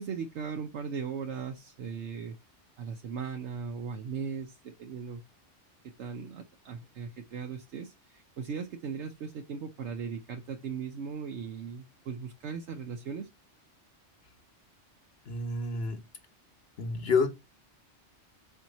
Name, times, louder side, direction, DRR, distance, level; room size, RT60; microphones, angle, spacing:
voice 1, 0.0-2.3 2.8-5.2 6.0-13.3, right 6 dB, 70° right, 1.0 m, -38 dB
voice 2, 15.3-16.0 16.8-17.3, left 4 dB, 60° left, 1.3 m, -28 dB
5.5 x 4.5 x 4.0 m
omnidirectional pair, 1.2 m